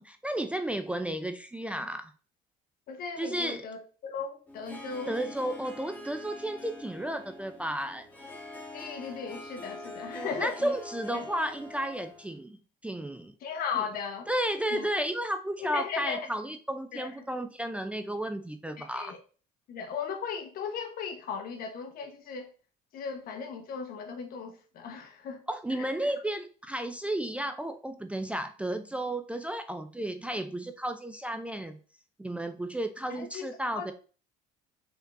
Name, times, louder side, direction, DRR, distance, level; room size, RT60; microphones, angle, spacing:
voice 1, 0.0-2.1 3.2-3.6 5.1-8.1 10.2-13.3 13.8-13.9 14.3-19.1 25.5-31.8 32.2-33.9, right 1 dB, 5° right, 0.4 m, -33 dB
voice 2, 2.9-5.1 8.7-10.7 11.1-11.2 13.4-14.3 14.7-14.9 15.6-16.3 16.9-17.3 18.8-19.2 19.7-22.5 22.9-25.4 25.7-25.9 33.1-33.4 33.8-33.9, left 6 dB, 60° left, 1.2 m, -37 dB
Harp, 4.5-12.4, left 1 dB, 10° left, 1.4 m, -44 dB
5.3 x 3.6 x 2.5 m
supercardioid pair, 95°, 17 cm